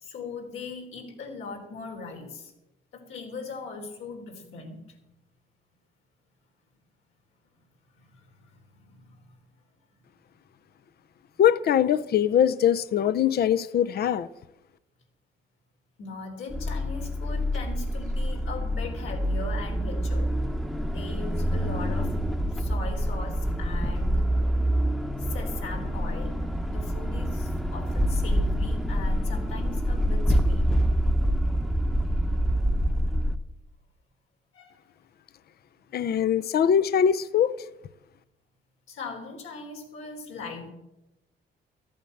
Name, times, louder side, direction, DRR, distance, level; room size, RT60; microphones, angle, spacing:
voice 1, 0.0-2.5 2.9-5.0 7.9-9.4 16.0-20.3 20.9-22.1 22.5-24.2 24.6-24.7 25.2-30.7 34.5-34.7 38.9-40.7, left 4 dB, 85° left, 3.8 m, -40 dB
voice 2, 11.4-14.3 35.9-37.5, left 9 dB, 50° left, 0.6 m, -22 dB
sound 1, 16.5-33.4, equal, ahead, 0.9 m, -26 dB
13.5 x 8.8 x 7.8 m
cardioid pair, 90°, 20 cm